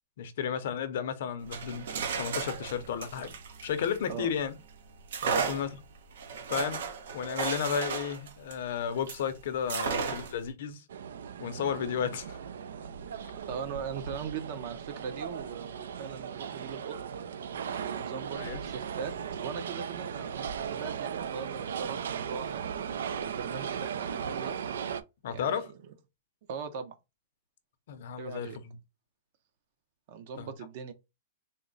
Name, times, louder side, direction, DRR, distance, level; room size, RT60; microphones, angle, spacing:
voice 1, 0.2-3.3 3.6-4.5 5.5-5.7 6.5-6.8 7.1-10.8 11.4-12.4 18.4-18.6 25.2-25.7 27.9-28.8 30.4-30.5, left 8 dB, 55° left, 0.6 m, -33 dB
sound 1, 1.4-4.4 5.1-9.3 9.7-10.5, right 5 dB, 70° right, 0.8 m, -34 dB
sound 2, 10.9-25.0, right 7 dB, 90° right, 0.4 m, -37 dB
voice 2, 13.5-17.0 17.7-19.1 19.4-22.7 23.2-24.6 25.3-25.7 26.5-27.0 28.2-28.6 30.1-30.9, right 6 dB, 40° right, 0.6 m, -40 dB
3.6 x 2.0 x 3.8 m
supercardioid pair, 175°, 0 cm